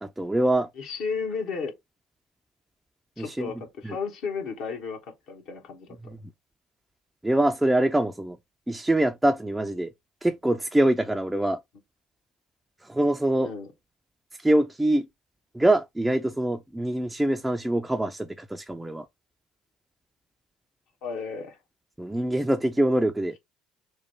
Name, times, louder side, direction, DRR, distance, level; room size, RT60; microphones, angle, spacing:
voice 1, 0.0-0.7 3.2-3.5 3.8-4.0 6.0-6.2 7.2-8.4 8.7-9.9 10.2-11.6 12.8-13.5 14.4-15.1 15.5-19.1 22.0-23.4, right 1 dB, 10° right, 0.3 m, -24 dB
voice 2, 0.8-1.7 3.2-5.0 5.3-5.9 13.4-13.7 21.0-21.6, left 5 dB, 60° left, 1.1 m, -33 dB
3.2 x 2.2 x 4.2 m
hypercardioid pair, 60°, 0 cm